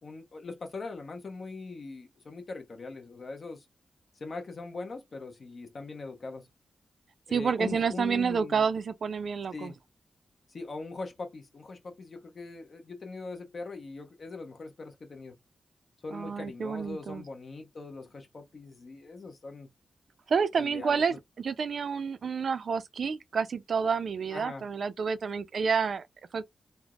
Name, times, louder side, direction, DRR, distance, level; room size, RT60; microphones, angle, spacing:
voice 1, 0.0-3.6 4.2-6.5 7.3-8.6 9.5-9.8 10.5-15.3 16.0-19.7 20.6-21.1 24.3-24.6, left 3 dB, 55° left, 0.8 m, -41 dB
voice 2, 7.3-9.7 16.1-17.2 20.3-26.1 26.3-26.4, right 6 dB, 70° right, 0.4 m, -29 dB
3.3 x 2.0 x 2.3 m
cardioid pair, 75°, 0 cm